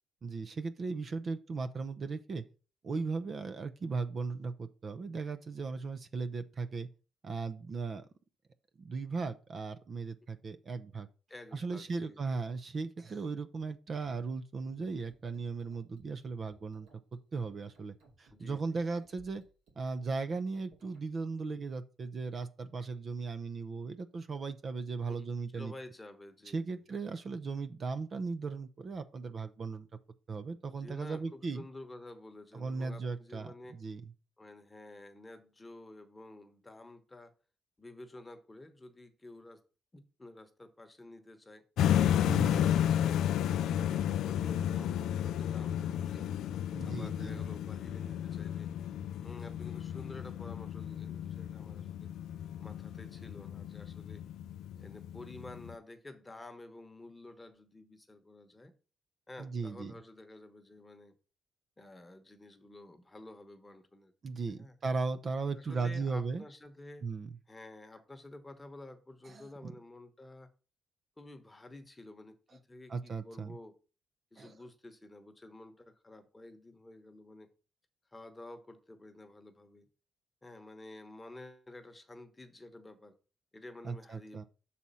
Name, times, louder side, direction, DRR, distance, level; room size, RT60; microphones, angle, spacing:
voice 1, 0.2-2.4 2.8-6.9 7.2-8.1 8.8-11.1 11.5-16.9 17.3-19.4 19.8-25.7 26.5-29.9 30.3-31.6 32.5-34.0 42.2-42.8 46.7-47.4 59.4-59.9 64.2-66.5 67.0-67.3 69.2-69.7 72.9-73.5 74.4-74.6 83.8-84.4, right 4 dB, 45° right, 0.6 m, -37 dB
voice 2, 11.3-12.4 18.3-18.9 25.1-25.3 25.6-26.8 30.7-33.8 34.4-37.3 37.8-39.6 39.9-41.6 43.6-46.3 46.8-48.7 49.2-52.1 52.6-54.2 54.8-58.7 59.3-61.1 61.8-64.1 64.5-64.7 65.5-67.1 67.5-70.5 71.2-73.7 74.3-77.5 78.1-79.9 80.4-83.1 83.5-84.4, left 2 dB, 15° left, 1.1 m, -51 dB
sound 1, 15.0-21.0, right 3 dB, 85° right, 2.4 m, -64 dB
sound 2, 41.8-55.7, left 10 dB, 80° left, 0.3 m, -33 dB
6.2 x 4.2 x 5.5 m
cardioid pair, 90°, 0 cm